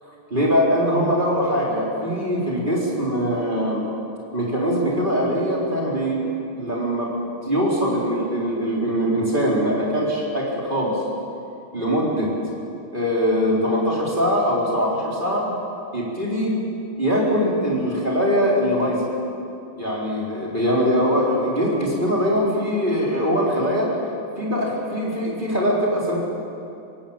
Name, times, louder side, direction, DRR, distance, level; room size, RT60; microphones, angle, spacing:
voice 1, 0.0-3.8 4.3-6.3 6.6-7.1 7.4-11.0 11.7-12.3 12.9-15.5 15.9-16.6 17.0-19.0 19.7-23.9 24.4-26.2, equal, 20° right, -4 dB, 4.4 m, -22 dB
21.5 x 17.0 x 8.9 m, 2.6 s
omnidirectional pair, 2.4 m